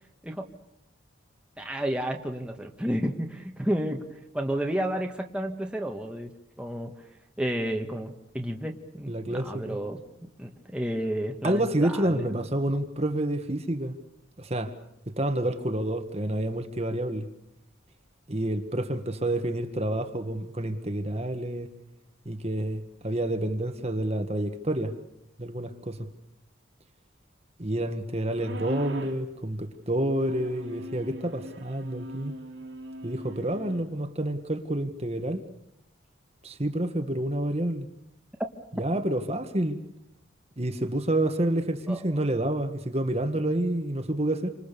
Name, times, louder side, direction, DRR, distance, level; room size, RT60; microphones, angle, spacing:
voice 1, 1.6-6.3 6.6-6.9 7.4-12.2 41.9-42.2, right 1 dB, 5° right, 1.7 m, -31 dB
voice 2, 9.1-9.8 11.4-14.0 14.4-14.7 15.1-17.3 18.3-21.7 22.3-24.9 25.4-26.1 27.6-32.3 33.0-35.4 36.4-37.9 38.8-39.8 40.6-44.5, right 1 dB, 30° right, 1.6 m, -28 dB
sound 1, 28.3-29.3 30.2-33.8, right 1 dB, 70° right, 2.7 m, -40 dB
29.0 x 26.0 x 6.9 m
head